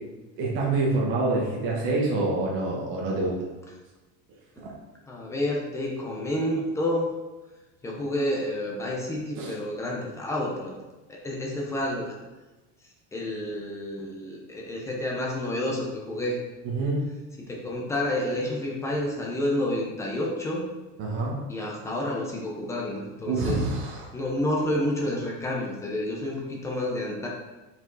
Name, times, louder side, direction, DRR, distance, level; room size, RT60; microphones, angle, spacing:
voice 1, 0.4-3.3 4.6-4.7 9.4-9.5 16.6-17.0 21.0-21.4 23.2-24.1, right 2 dB, 35° right, -3 dB, 1.3 m, -26 dB
voice 2, 5.1-7.1 7.8-10.7 11.1-12.2 12.8-16.4 17.4-20.6 21.5-23.6 24.1-27.3, left 1 dB, 10° left, -2 dB, 0.7 m, -29 dB
5.7 x 4.7 x 4.0 m, 1.1 s
cardioid pair, 180°, 32 cm